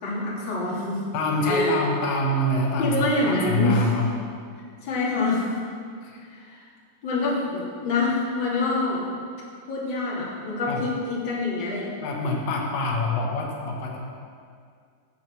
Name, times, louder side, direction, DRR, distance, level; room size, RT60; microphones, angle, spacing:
voice 1, 0.0-1.0 1.4-1.8 2.8-3.8 4.8-5.6 6.3-6.7 7.0-9.0 9.7-11.9, left 2 dB, 30° left, -6 dB, 3.0 m, -26 dB
voice 2, 1.1-4.1 6.0-6.2 10.7-10.8 12.0-14.0, left 1 dB, 80° left, 0 dB, 3.6 m, -25 dB
17.0 x 7.7 x 6.1 m, 2.2 s
omnidirectional pair, 5.1 m